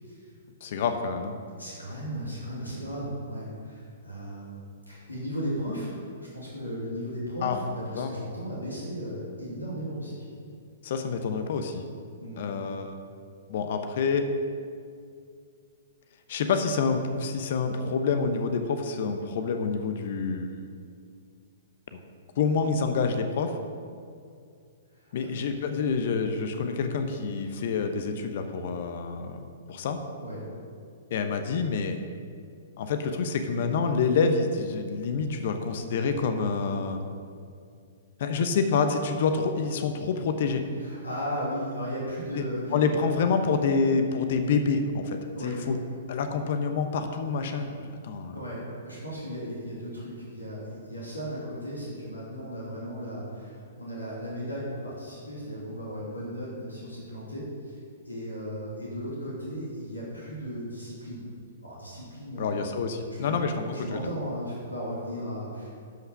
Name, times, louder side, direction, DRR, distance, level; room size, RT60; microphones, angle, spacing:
voice 1, 0.6-1.4 7.4-7.6 7.9-8.1 10.8-11.8 12.4-12.9 13.5-14.3 16.3-20.6 21.9-22.0 22.4-23.6 25.1-30.0 31.1-32.0 32.8-37.0 38.2-40.6 42.3-42.4 42.7-45.8 46.1-48.4 62.4-64.0, left 5 dB, 50° left, 7 dB, 0.9 m, -27 dB
voice 2, 1.6-10.2 12.2-12.4 24.9-25.3 30.2-30.4 40.8-42.8 45.3-45.6 48.3-57.8 58.0-61.2 61.6-62.7 63.2-63.3 63.8-65.7, equal, 85° left, -6 dB, 2.6 m, -36 dB
12.0 x 5.7 x 5.5 m, 2.3 s
figure-of-eight pair, 115°, 0 cm